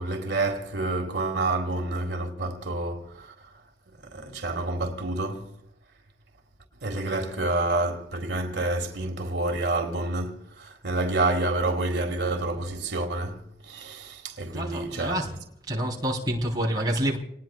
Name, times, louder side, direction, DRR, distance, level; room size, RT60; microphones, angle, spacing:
voice 1, 0.0-3.3 4.0-5.5 6.8-15.2, right 2 dB, 85° right, 1.8 m, -28 dB
voice 2, 14.4-15.3 15.6-17.2, equal, 25° right, 3.2 m, -28 dB
28.0 x 19.5 x 2.3 m
head